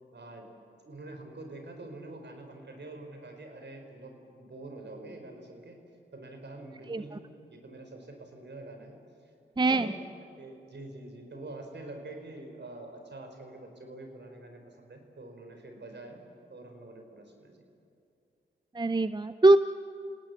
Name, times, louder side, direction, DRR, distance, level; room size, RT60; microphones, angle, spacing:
voice 1, 0.1-0.5 0.8-5.8 6.1-7.2 7.5-9.0 9.2-9.3 9.7-10.0 10.4-16.2 16.5-17.6, right 2 dB, 55° right, 4 dB, 5.1 m, -45 dB
voice 2, 18.7-19.6, right 2 dB, 20° right, 12 dB, 0.7 m, -22 dB
30.0 x 18.0 x 7.2 m, 2.6 s
supercardioid pair, 40°, 21 cm